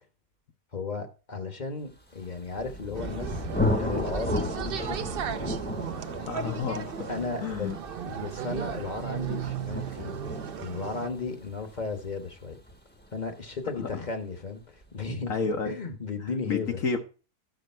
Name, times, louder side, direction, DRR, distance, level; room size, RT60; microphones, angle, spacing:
voice 1, 0.7-5.1 7.1-7.8 8.1-10.2 10.6-12.6 13.1-15.3 15.6-16.8, left 4 dB, 30° left, 1.1 m, -35 dB
Thunder, 2.2-13.8, left 1 dB, 5° left, 1.0 m, -34 dB
sound 1, 3.0-11.1, right 9 dB, 60° right, 0.5 m, -36 dB
voice 2, 6.2-7.1 7.4-7.8 13.8-14.0 15.3-15.8 16.5-17.0, left 5 dB, 60° left, 1.3 m, -30 dB
12.0 x 6.4 x 4.4 m
omnidirectional pair, 1.7 m